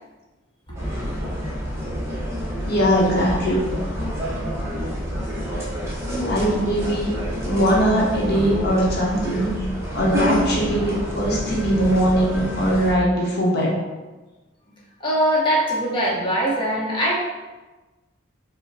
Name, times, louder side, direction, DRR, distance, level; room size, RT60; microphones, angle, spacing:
sound 1, 0.8-12.9, equal, 15° right, 0.8 m, -28 dB
voice 1, 2.7-3.7 6.1-9.5 9.9-13.8, equal, 60° left, -3 dB, 0.9 m, -21 dB
voice 2, 15.0-17.2, equal, 25° left, -6 dB, 0.9 m, -21 dB
5.2 x 2.2 x 4.0 m, 1.2 s
head